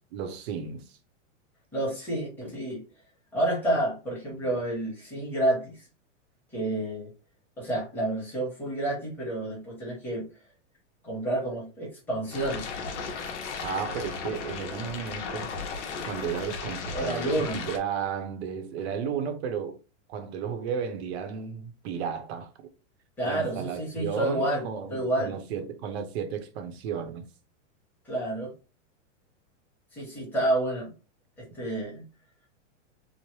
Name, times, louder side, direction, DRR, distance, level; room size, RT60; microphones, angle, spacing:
voice 1, 0.1-1.0 4.3-4.5 13.6-15.5 16.1-19.8 20.1-22.5 23.2-27.3, right 7 dB, 55° right, 0.7 m, -33 dB
voice 2, 1.7-2.8 3.3-5.8 6.5-7.1 7.6-10.2 11.0-12.7 16.9-17.6 23.2-25.3 28.0-28.5 29.9-30.9 31.4-32.0, right 1 dB, 5° left, 1.1 m, -29 dB
sound 1, 12.3-17.8, left 5 dB, 65° left, 0.8 m, -35 dB
3.1 x 2.0 x 3.0 m
supercardioid pair, 160°, 37 cm